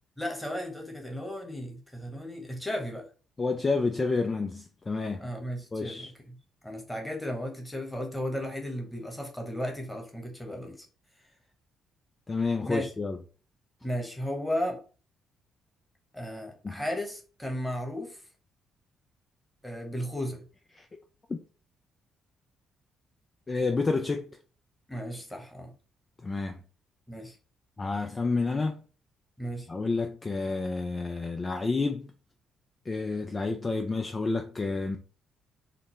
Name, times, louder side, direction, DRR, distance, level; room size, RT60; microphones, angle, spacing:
voice 1, 0.2-3.0 5.2-10.8 12.7-12.9 13.8-14.8 16.1-18.2 19.6-20.5 24.9-25.7 27.1-27.4 29.4-29.7, equal, 5° left, 1.2 m, -35 dB
voice 2, 3.4-5.3 5.7-6.1 12.3-13.2 16.6-16.8 20.8-20.9 21.3-21.4 23.5-24.4 26.2-26.6 27.8-28.8 29.7-32.1 32.9-35.0, left 3 dB, 30° left, 0.3 m, -29 dB
3.8 x 2.0 x 3.2 m
figure-of-eight pair, 45°, 0 cm